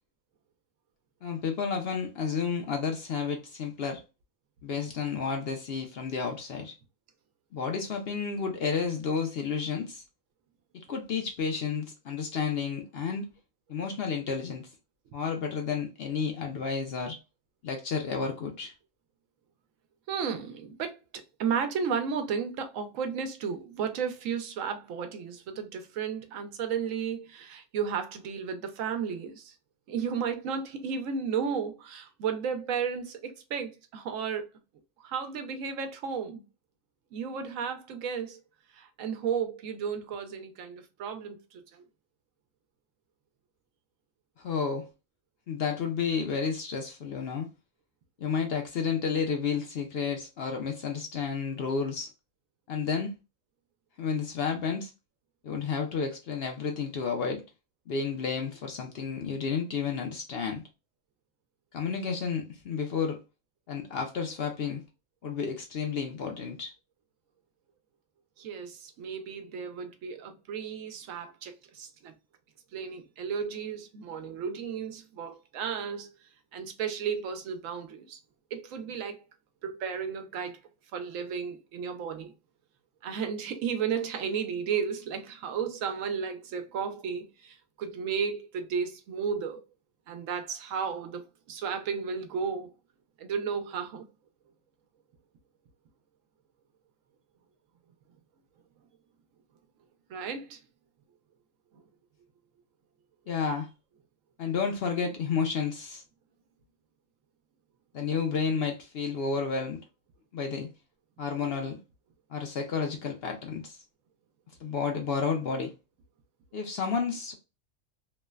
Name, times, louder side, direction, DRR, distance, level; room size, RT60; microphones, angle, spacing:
voice 1, 1.2-4.0 4.6-6.7 7.5-10.0 10.7-13.3 13.7-14.7 15.1-17.2 17.6-18.7 44.4-44.9 45.5-47.5 48.2-52.1 52.7-53.2 54.0-54.9 55.4-57.4 57.9-60.6 61.7-63.2 63.7-64.8 65.2-66.7 103.3-103.7 104.4-106.0 107.9-109.8 110.3-110.7 111.2-111.8 112.3-113.8 114.6-115.7 116.5-117.3, left 5 dB, 60° left, 0.7 m, -31 dB
voice 2, 20.1-21.0 21.4-29.5 29.9-34.5 35.0-36.4 37.1-38.4 38.7-41.8 68.4-72.1 72.7-76.1 76.5-78.2 78.5-79.2 79.6-80.6 80.9-82.3 83.0-89.6 90.1-92.7 93.2-94.1 100.1-100.6 101.7-101.8, right 6 dB, 75° right, 1.0 m, -33 dB
3.1 x 2.1 x 2.2 m
omnidirectional pair, 1.4 m